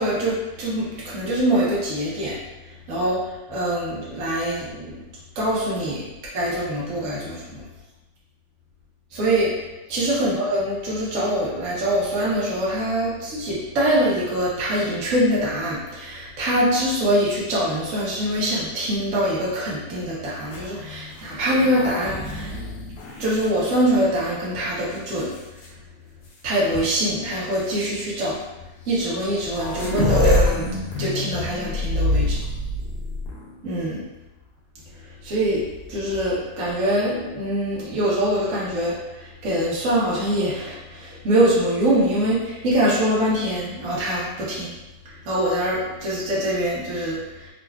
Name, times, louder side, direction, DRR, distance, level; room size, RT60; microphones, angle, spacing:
voice 1, 0.0-2.4 2.9-5.0 5.3-6.1 6.3-7.6 9.1-9.5 9.9-22.6 23.2-25.4 26.4-28.4 28.9-32.3 33.6-34.0 35.2-44.7 45.2-47.5, right 1 dB, 55° right, -7 dB, 1.3 m, -24 dB
sound 1, 20.4-24.2 24.9-25.7 26.8-26.9 27.6-27.8 28.9-29.0 29.2-33.7 35.6-36.3, left 1 dB, 70° left, 1.2 m, -26 dB
3.7 x 3.0 x 2.3 m, 1.0 s
omnidirectional pair, 1.8 m